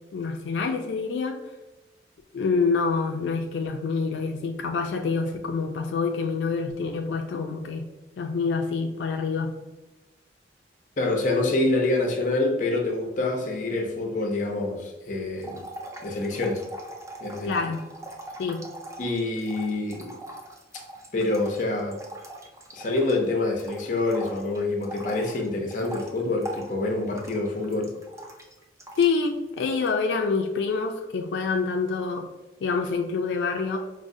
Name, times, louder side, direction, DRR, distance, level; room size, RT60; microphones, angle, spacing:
voice 1, 0.1-1.4 2.3-7.9 8.2-9.6 17.5-17.9 18.4-18.7 29.0-32.3 32.6-33.8, left 4 dB, 85° left, 4 dB, 0.3 m, -26 dB
voice 2, 11.0-15.6 16.0-16.6 17.2-17.5 19.0-20.2 21.1-22.0 22.7-28.0, left 2 dB, 45° left, 2 dB, 0.6 m, -26 dB
sound 1, 15.4-23.3 23.6-29.3 29.6-29.9, right 1 dB, 15° right, 0.4 m, -41 dB
4.8 x 2.0 x 2.6 m, 1.1 s
head